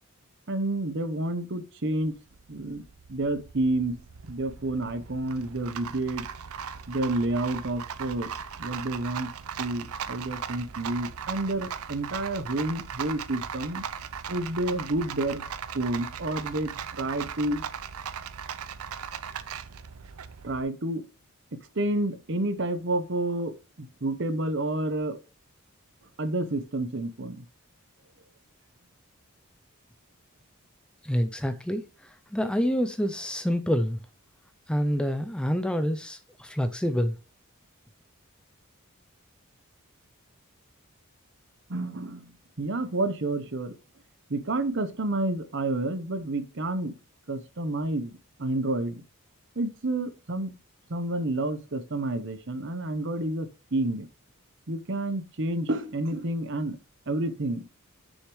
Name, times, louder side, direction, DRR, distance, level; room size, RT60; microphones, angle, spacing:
voice 1, 0.5-2.2 2.5-2.8 3.1-6.3 6.9-8.3 8.6-9.3 9.6-13.8 14.3-15.5 15.7-17.6 20.4-21.0 21.5-25.2 26.2-27.4 41.7-43.7 44.3-46.9 47.3-49.0 49.6-50.5 50.9-54.1 54.7-56.8 57.1-57.7, right 2 dB, 55° right, 0.9 m, -29 dB
Rattle, 2.0-20.6, right 7 dB, 80° right, 0.6 m, -38 dB
voice 2, 31.0-31.8 32.3-34.0 34.7-37.2, equal, 5° left, 0.5 m, -27 dB
9.5 x 6.5 x 3.1 m
head